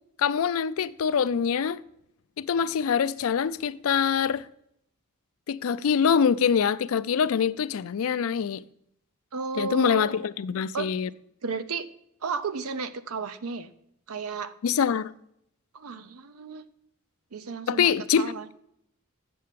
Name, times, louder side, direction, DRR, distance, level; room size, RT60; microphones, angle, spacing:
voice 1, 0.2-1.8 2.4-4.5 5.5-8.6 9.5-11.1 14.6-15.1 17.7-18.5, left 7 dB, 70° left, 0.4 m, -24 dB
voice 2, 9.3-10.3 10.7-10.9 11.4-11.9 12.2-13.7 14.1-14.5 15.7-16.6 17.3-18.5, right 5 dB, 85° right, 0.6 m, -33 dB
7.7 x 6.6 x 6.8 m
head